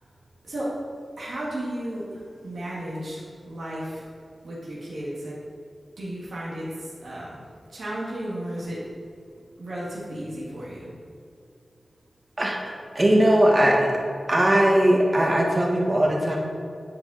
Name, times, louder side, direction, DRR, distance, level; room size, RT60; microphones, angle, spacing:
voice 1, 1.2-2.1 2.4-4.0 4.4-5.3 6.0-6.7 7.0-7.4 7.7-8.8 9.6-10.9, right 1 dB, 85° right, -7 dB, 1.9 m, -33 dB
voice 2, 12.4-13.9 14.3-16.4, right 1 dB, 35° right, -1 dB, 1.4 m, -20 dB
9.5 x 4.9 x 4.1 m, 2.4 s
wide cardioid pair, 70°, 0 cm